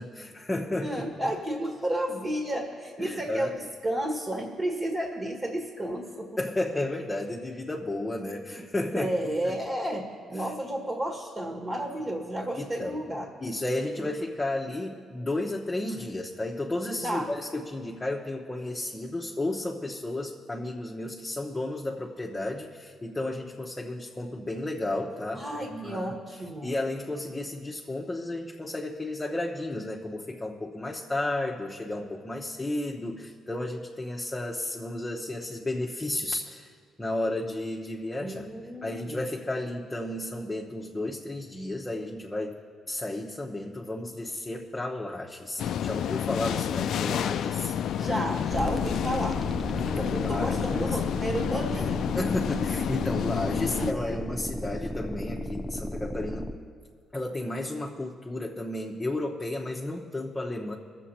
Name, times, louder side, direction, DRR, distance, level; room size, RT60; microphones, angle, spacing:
voice 1, 0.0-1.1 3.0-3.5 6.4-9.1 9.4-9.6 10.4-10.5 12.6-13.0 13.4-26.2 26.6-36.7 37.0-38.4 38.8-42.6 42.9-47.7 49.8-51.0 51.7-51.9 52.1-56.5 57.1-60.8, left 1 dB, 15° left, -2 dB, 1.0 m, -33 dB
voice 2, 0.8-6.4 8.1-8.2 8.9-13.3 14.0-14.1 17.0-17.3 25.3-26.7 38.2-39.2 47.0-47.6 48.0-49.4 49.9-52.0 53.5-54.2, right 1 dB, 30° right, 2 dB, 1.7 m, -32 dB
sound 1, 45.6-53.9, left 9 dB, 70° left, 0.4 m, -30 dB
sound 2, 48.5-56.5, equal, 5° right, 0.7 m, -34 dB
21.0 x 7.5 x 4.3 m, 2.2 s
cardioid pair, 90°, 0 cm